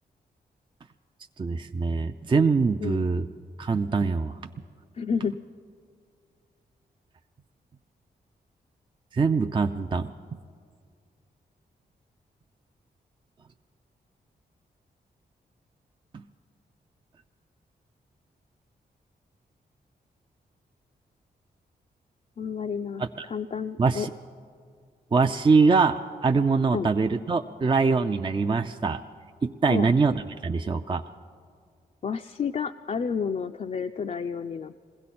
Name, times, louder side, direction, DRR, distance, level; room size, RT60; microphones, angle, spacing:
voice 1, 1.4-3.3 3.6-4.4 9.1-10.1 23.0-23.1 23.8-24.1 25.1-29.0 29.4-31.0, right 4 dB, 30° right, 6 dB, 0.4 m, -23 dB
voice 2, 5.0-5.3 22.4-24.1 26.7-26.9 29.7-29.9 32.0-34.9, left 6 dB, 40° left, 4 dB, 0.4 m, -30 dB
21.0 x 16.0 x 4.3 m, 2.2 s
cardioid pair, 65°, 18 cm